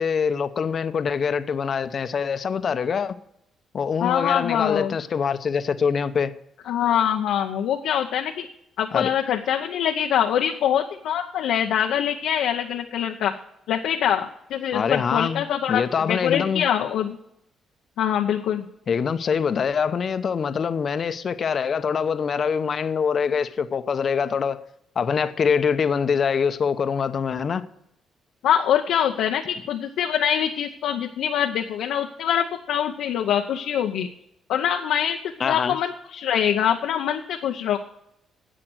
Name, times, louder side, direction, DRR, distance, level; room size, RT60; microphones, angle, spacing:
voice 1, 0.0-3.2 3.7-6.3 8.9-9.1 14.7-16.6 18.9-24.6 25.0-27.7 35.4-35.8, left 6 dB, 50° left, 0.8 m, -24 dB
voice 2, 4.0-5.0 6.7-8.5 8.8-13.3 13.7-17.2 18.0-18.6 28.4-34.1 34.5-37.8, left 9 dB, 80° left, 0.8 m, -24 dB
10.0 x 7.7 x 7.8 m
cardioid pair, 90°, 0 cm